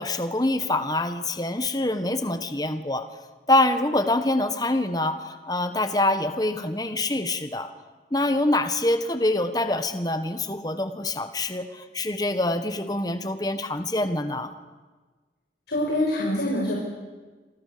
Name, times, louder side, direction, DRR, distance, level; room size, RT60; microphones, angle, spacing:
voice 1, 0.0-3.1 3.5-7.7 8.1-14.5, left 2 dB, 20° left, 9 dB, 1.5 m, -25 dB
voice 2, 15.7-16.7, left 1 dB, 80° left, -3 dB, 6.4 m, -25 dB
28.5 x 25.0 x 7.0 m, 1.3 s
head